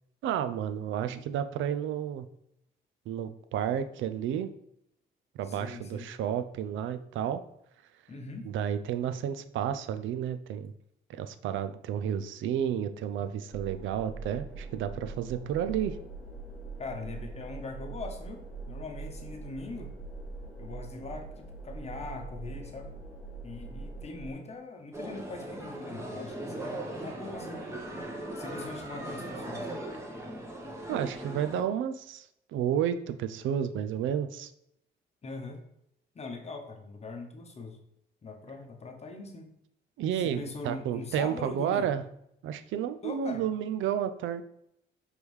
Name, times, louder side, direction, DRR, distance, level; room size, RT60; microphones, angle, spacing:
voice 1, 0.2-2.3 3.1-4.5 5.4-7.4 8.5-10.7 11.1-16.0 30.9-34.5 40.0-42.0 42.4-44.4, right 9 dB, 75° right, 10 dB, 0.4 m, -31 dB
voice 2, 5.4-6.1 8.1-8.5 16.8-19.9 20.6-23.0 23.4-27.7 28.3-29.7 35.2-35.6 36.1-37.8 38.2-39.5 40.1-41.9 43.0-43.4, left 3 dB, 35° left, 4 dB, 0.9 m, -41 dB
sound 1, 13.5-24.3, right 3 dB, 5° left, 1.4 m, -42 dB
sound 2, 24.9-31.6, right 1 dB, 15° right, 1.0 m, -39 dB
5.2 x 3.2 x 3.2 m, 0.75 s
cardioid pair, 90°, 20 cm